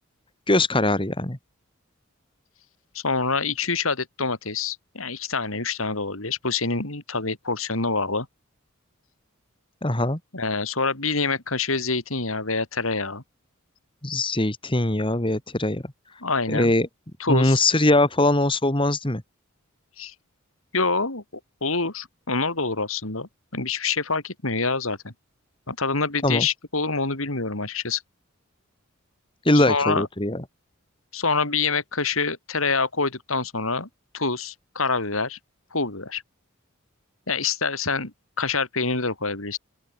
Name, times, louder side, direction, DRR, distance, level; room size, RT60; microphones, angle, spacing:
voice 1, 0.5-1.4 9.8-10.2 14.0-15.8 16.5-16.9 17.3-19.2 26.2-26.5 29.4-30.4, left 2 dB, 25° left, 2.7 m, -21 dB
voice 2, 2.9-8.3 10.3-13.2 16.2-16.7 17.2-17.6 20.0-20.1 20.7-21.2 21.6-25.1 25.7-28.0 29.5-30.1 31.1-33.9 34.1-35.4 35.7-36.2 37.3-39.6, left 4 dB, 75° left, 4.5 m, -26 dB
open air
head